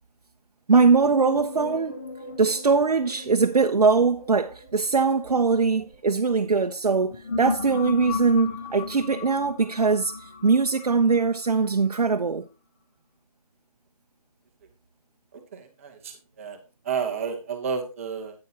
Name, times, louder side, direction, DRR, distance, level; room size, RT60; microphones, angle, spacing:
voice 1, 0.7-2.0 2.4-12.5, right 4 dB, 85° right, 0.6 m, -21 dB
sound 1, 1.0-6.3 6.9-11.9, left 3 dB, 20° left, 0.7 m, -36 dB
voice 2, 15.5-16.1 16.4-16.6 16.8-18.3, right 6 dB, 20° right, 1.0 m, -30 dB
8.7 x 8.7 x 2.8 m
figure-of-eight pair, 160°, 19 cm